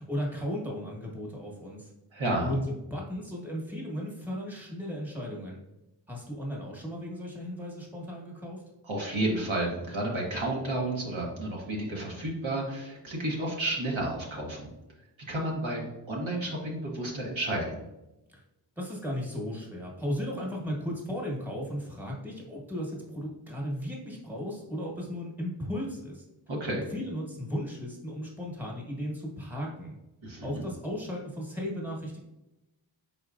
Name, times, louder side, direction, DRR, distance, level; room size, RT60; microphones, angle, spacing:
voice 1, 0.0-1.9 2.4-5.6 6.1-8.6 18.3-18.4 18.8-26.2 26.9-30.0 30.4-32.2, equal, 5° right, -2 dB, 1.2 m, -35 dB
voice 2, 2.1-2.5 8.8-14.7 15.3-17.7 26.5-26.8 30.2-30.7, right 1 dB, 75° right, -3 dB, 1.3 m, -31 dB
4.4 x 3.9 x 2.5 m, 0.94 s
wide cardioid pair, 65°, 48 cm